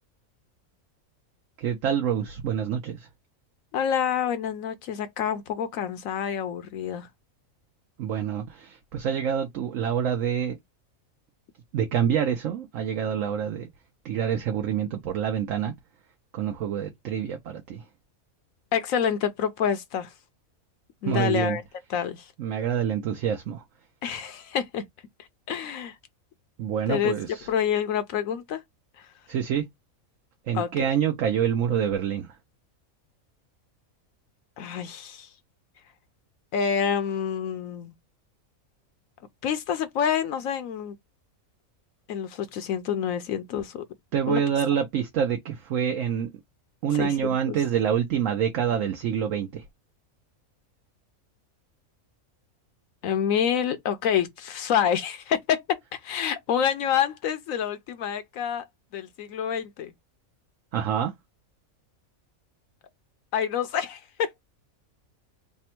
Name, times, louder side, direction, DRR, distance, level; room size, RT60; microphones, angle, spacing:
voice 1, 1.6-3.1 8.0-10.6 11.7-13.7 14.0-15.7 16.3-17.8 21.0-21.6 22.4-23.6 26.6-27.5 29.3-29.7 30.5-32.4 44.1-46.3 46.8-49.6 60.7-61.1, right 8 dB, 70° right, 1.0 m, -26 dB
voice 2, 3.7-7.1 18.7-20.1 21.0-21.6 21.9-22.3 24.0-24.8 25.5-26.0 26.9-27.1 27.5-28.6 29.0-29.1 30.5-30.7 34.6-35.3 36.5-37.9 39.4-41.0 42.1-43.8 44.3-44.4 46.9-47.6 53.0-58.6 58.9-59.9 63.3-64.4, left 8 dB, 75° left, 1.0 m, -27 dB
3.4 x 2.2 x 4.3 m
omnidirectional pair, 1.5 m